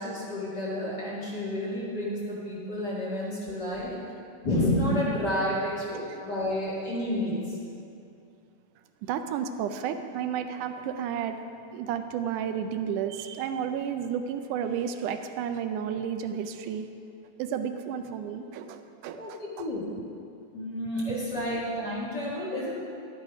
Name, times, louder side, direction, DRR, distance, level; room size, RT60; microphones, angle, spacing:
voice 1, 0.0-3.9 4.4-7.6 19.2-19.9 20.5-22.7, left 1 dB, 40° left, -7 dB, 2.2 m, -30 dB
voice 2, 9.0-11.4 11.7-16.9 17.4-19.7 21.5-21.6, right 8 dB, 85° right, 8 dB, 2.2 m, -32 dB
11.5 x 9.8 x 5.1 m, 2.5 s
omnidirectional pair, 3.6 m